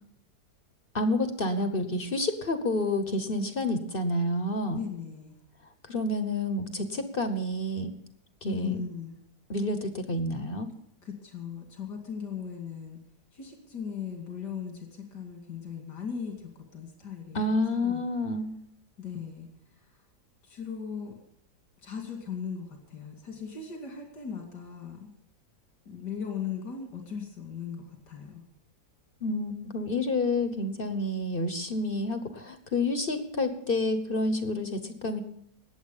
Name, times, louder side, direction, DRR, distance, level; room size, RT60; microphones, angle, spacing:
voice 1, 0.9-4.8 5.9-7.9 8.4-8.8 9.5-10.7 17.3-18.5 29.2-35.2, left 2 dB, 40° left, 8 dB, 1.1 m, -29 dB
voice 2, 4.7-5.4 8.5-9.2 11.0-13.0 13.3-17.4 17.7-18.0 19.0-19.5 20.5-21.1 21.8-25.1 25.9-28.4, left 7 dB, 90° left, 1 dB, 3.0 m, -38 dB
19.5 x 7.9 x 5.5 m, 0.71 s
omnidirectional pair, 1.7 m